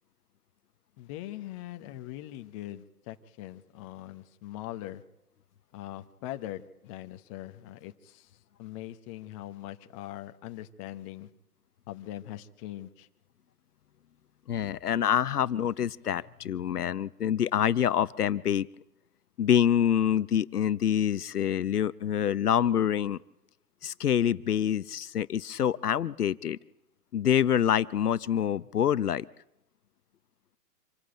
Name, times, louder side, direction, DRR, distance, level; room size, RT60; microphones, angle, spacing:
voice 1, 1.0-5.0 5.7-8.3 8.6-11.3 11.9-13.1, left 14 dB, 20° left, 8 dB, 0.9 m, -41 dB
voice 2, 14.5-18.7 19.4-23.2 23.8-26.6 27.1-29.3, left 9 dB, 75° left, 17 dB, 0.8 m, -26 dB
26.0 x 14.0 x 9.0 m, 0.87 s
hypercardioid pair, 135°, 46 cm